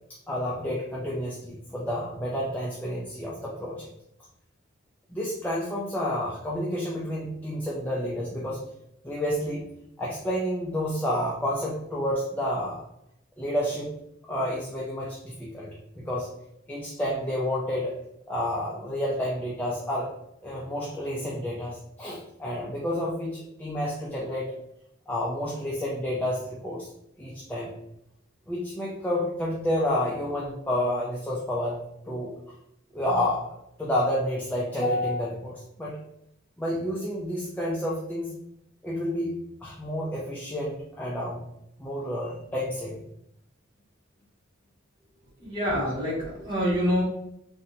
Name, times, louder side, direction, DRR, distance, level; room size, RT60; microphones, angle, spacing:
voice 1, 0.3-3.9 5.1-8.6 9.0-9.6 10.0-12.8 13.4-13.9 14.3-16.3 16.7-17.9 18.3-20.2 20.4-24.5 25.1-26.9 27.2-27.7 28.5-32.3 32.9-36.0 36.6-38.3 38.8-39.3 39.6-41.4 41.8-43.0, left 1 dB, 10° left, -5 dB, 0.4 m, -30 dB
voice 2, 45.4-47.0, equal, 25° right, -7 dB, 1.3 m, -26 dB
3.4 x 2.6 x 2.7 m, 0.79 s
head